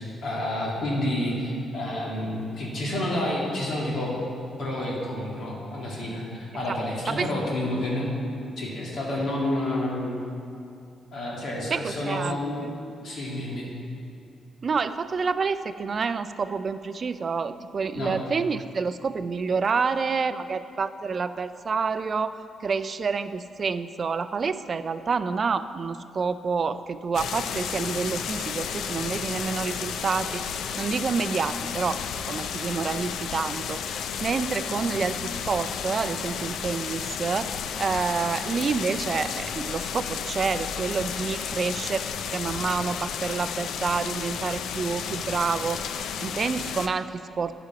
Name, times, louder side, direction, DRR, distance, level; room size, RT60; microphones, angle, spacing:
voice 1, 0.2-4.1 4.6-8.1 8.6-10.2 11.1-12.6 13.0-13.7 17.9-18.1, left 1 dB, 60° left, -4 dB, 2.4 m, -29 dB
voice 2, 11.7-12.4 14.6-32.0 32.3-42.0 42.3-45.8 46.2-47.5, right 5 dB, 40° right, 12 dB, 0.3 m, -28 dB
sound 1, 27.1-46.9, left 7 dB, 80° left, 0.4 m, -32 dB
11.5 x 5.1 x 5.7 m, 2.5 s
cardioid pair, 125°, 0 cm